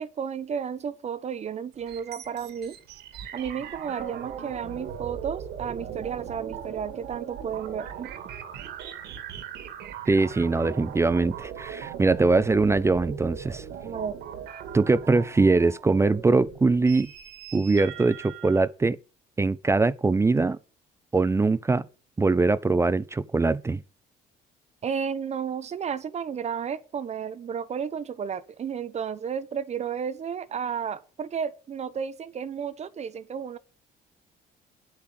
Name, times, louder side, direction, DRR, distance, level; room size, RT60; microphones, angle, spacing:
voice 1, 0.0-2.8 3.3-8.1 13.8-14.2 24.8-33.6, right 7 dB, 40° right, 1.0 m, -32 dB
sound 1, 1.7-18.7, right 8 dB, 75° right, 2.4 m, -39 dB
voice 2, 10.1-13.6 14.7-17.1 17.5-19.0 19.4-20.6 21.1-21.9 22.2-23.8, right 3 dB, 15° right, 0.5 m, -22 dB
9.4 x 8.6 x 7.6 m
cardioid pair, 110°, 17 cm